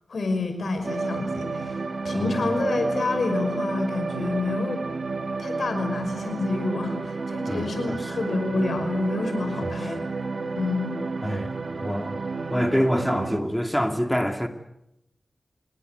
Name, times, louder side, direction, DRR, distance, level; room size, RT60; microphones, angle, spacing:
voice 1, 0.1-1.8 2.0-4.8 5.4-10.0 10.6-10.9, left 3 dB, 85° left, 5.6 m, -28 dB
sound 1, 0.8-13.4, right 3 dB, 70° right, 1.9 m, -31 dB
voice 2, 2.1-2.5 7.5-8.1 9.6-9.8 11.2-11.5 11.8-12.2 12.5-14.5, equal, 5° left, 2.6 m, -26 dB
27.5 x 20.0 x 8.2 m
cardioid pair, 50°, 0 cm